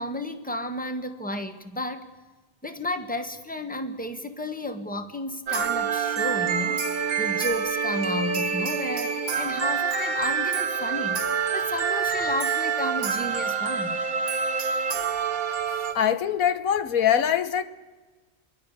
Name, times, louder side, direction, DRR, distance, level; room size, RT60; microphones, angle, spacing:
voice 1, 0.0-2.1 2.6-14.0, left 1 dB, 5° left, 1.6 m, -32 dB
sound 1, 5.5-15.9, right 6 dB, 85° right, 1.9 m, -27 dB
voice 2, 15.9-17.6, left 9 dB, 85° left, 1.5 m, -23 dB
27.5 x 23.0 x 6.8 m
omnidirectional pair, 1.4 m